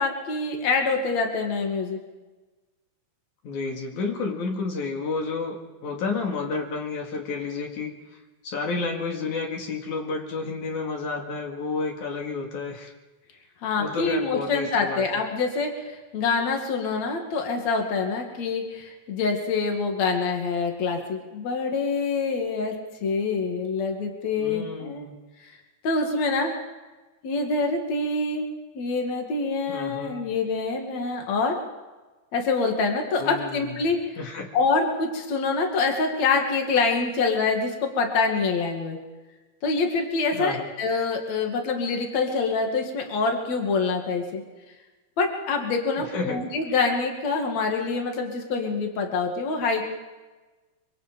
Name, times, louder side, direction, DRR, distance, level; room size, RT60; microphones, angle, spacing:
voice 1, 0.0-2.0 13.6-22.8 23.0-25.1 25.4-25.5 25.8-26.5 27.2-28.5 28.7-31.5 32.3-34.0 34.5-39.0 39.6-44.4 45.2-49.8, left 4 dB, 65° left, 2 dB, 3.3 m, -25 dB
voice 2, 3.4-5.6 5.8-7.9 8.4-12.9 13.8-15.0 24.4-25.1 29.7-30.3 33.2-33.7 34.2-34.5 40.3-40.7 46.1-46.4, left 4 dB, 85° left, 1 dB, 3.8 m, -30 dB
25.5 x 24.5 x 5.2 m, 1.2 s
omnidirectional pair, 3.3 m